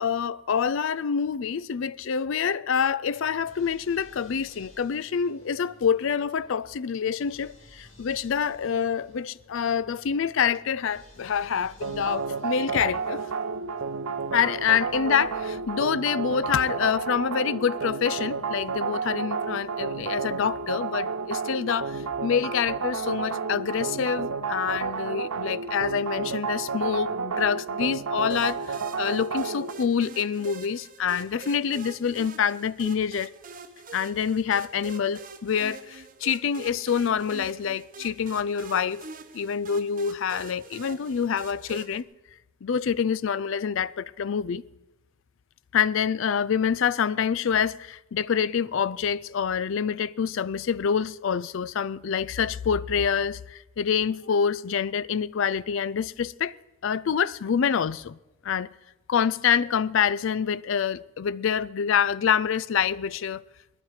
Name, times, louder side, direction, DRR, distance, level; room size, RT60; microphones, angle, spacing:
voice 1, 0.0-13.3 14.3-33.3 33.9-39.0 39.3-42.0 42.6-44.6 45.7-56.6 56.8-58.2 58.4-58.7 59.1-63.4, left 7 dB, 60° left, 0.4 m, -26 dB
sound 1, 3.0-21.5, left 1 dB, 35° left, 3.7 m, -56 dB
sound 2, 11.8-29.7, right 5 dB, 85° right, 0.8 m, -31 dB
sound 3, 28.3-42.0, right 4 dB, 40° right, 0.8 m, -45 dB
19.5 x 12.5 x 4.9 m
head